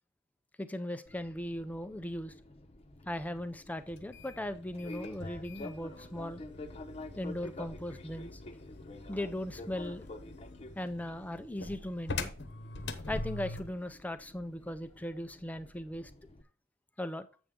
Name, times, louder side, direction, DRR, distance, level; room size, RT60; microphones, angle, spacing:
voice 1, 0.6-2.3 3.1-6.4 7.2-8.4 9.1-10.1 10.8-12.3 13.1-16.1 17.0-17.3, left 1 dB, 5° left, 0.4 m, -38 dB
Fixed-wing aircraft airplane, 1.0-16.4, left 2 dB, 30° left, 0.8 m, -50 dB
sound 1, 3.9-13.8, left 2 dB, 55° left, 0.9 m, -44 dB
7.9 x 6.6 x 3.6 m
head